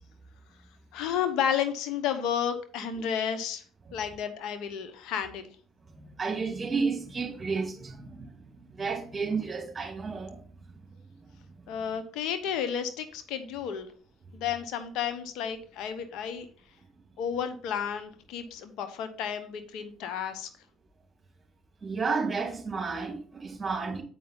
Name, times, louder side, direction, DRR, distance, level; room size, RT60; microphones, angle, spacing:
voice 1, 0.9-3.6 3.9-5.5 11.7-13.9 14.3-16.5 17.2-20.5, left 8 dB, 75° left, 1.0 m, -32 dB
voice 2, 5.9-8.3 8.7-10.4 21.8-24.0, right 4 dB, 30° right, 2.5 m, -32 dB
8.4 x 5.3 x 3.9 m
supercardioid pair, 70°, 0 cm